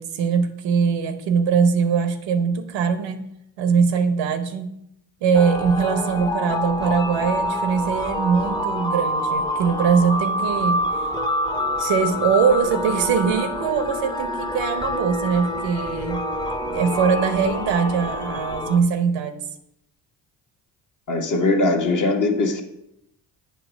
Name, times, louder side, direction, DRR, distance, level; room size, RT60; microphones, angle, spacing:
voice 1, 0.0-3.2 3.6-4.7 5.2-10.9 11.8-16.3 16.7-19.4, right 6 dB, 80° right, 9 dB, 0.9 m, -21 dB
sound 1, 5.3-18.8, left 1 dB, 10° left, 0.8 m, -26 dB
voice 2, 21.1-22.6, left 2 dB, 45° left, 4 dB, 1.2 m, -20 dB
7.6 x 3.1 x 6.1 m, 0.79 s
supercardioid pair, 60°, 43 cm